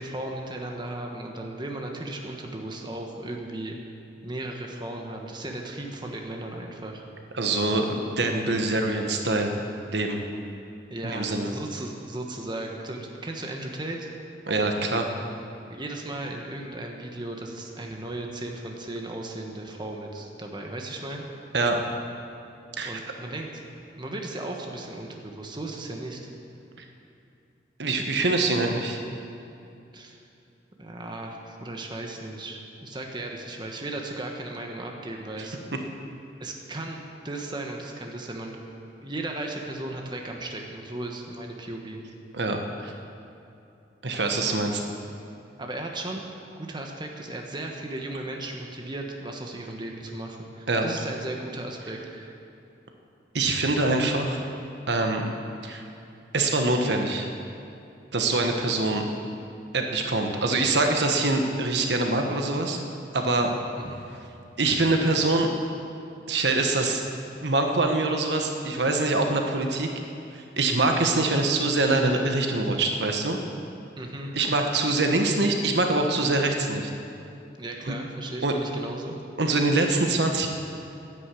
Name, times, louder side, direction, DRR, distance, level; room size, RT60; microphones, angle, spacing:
voice 1, 0.0-3.8 4.2-7.0 10.9-14.1 15.7-21.2 22.8-23.6 24.0-26.2 29.9-30.2 30.8-35.6 36.4-38.6 39.0-42.0 45.6-46.2 46.5-52.3 63.8-64.0 74.0-74.3 77.6-79.1, right 2 dB, 25° right, 1 dB, 1.4 m, -36 dB
voice 2, 7.3-9.6 9.9-10.2 11.0-11.5 14.5-15.1 21.5-21.8 22.8-23.0 27.8-29.0 42.3-42.9 44.0-44.8 50.7-50.9 53.3-54.4 54.9-55.3 55.6-55.8 56.3-57.3 58.1-59.0 59.7-62.8 63.1-63.5 64.6-65.5 66.3-67.0 67.4-69.9 70.3-73.4 74.3-76.9 77.9-78.0 78.4-78.5 79.4-80.5, right 2 dB, 70° right, 3 dB, 1.3 m, -24 dB
11.0 x 11.0 x 8.4 m, 2.7 s
head